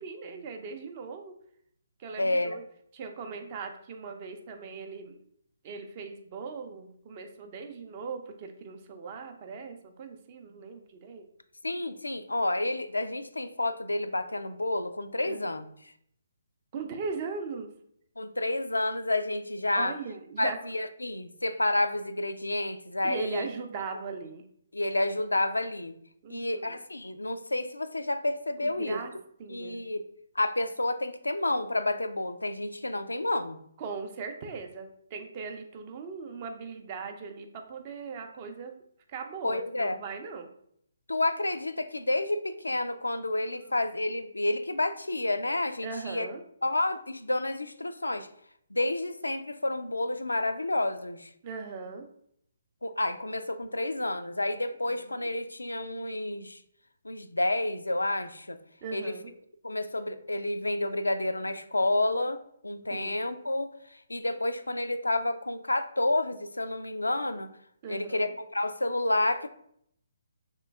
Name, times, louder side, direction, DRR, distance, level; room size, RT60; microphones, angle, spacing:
voice 1, 0.0-1.3 2.0-2.6 2.9-5.2 5.6-11.2 15.2-15.5 16.7-17.7 19.8-20.6 23.0-24.5 26.2-26.8 28.6-29.1 29.4-29.8 33.8-38.7 39.1-40.5 45.8-46.4 51.4-52.1 55.0-55.3 58.8-59.3 62.9-63.2 67.8-68.3, right 5 dB, 35° right, 5 dB, 0.5 m, -39 dB
voice 2, 2.2-2.6 11.6-15.7 18.2-19.9 20.4-23.5 24.7-26.0 26.3-29.0 29.5-30.0 30.4-33.6 39.4-40.0 41.1-46.3 46.6-48.3 48.7-51.3 52.8-56.6 57.0-58.6 58.9-59.2 59.6-63.7 64.1-67.5 67.9-69.5, left 2 dB, 80° left, 10 dB, 0.3 m, -30 dB
3.2 x 2.9 x 3.4 m, 0.68 s
figure-of-eight pair, 135°, 0 cm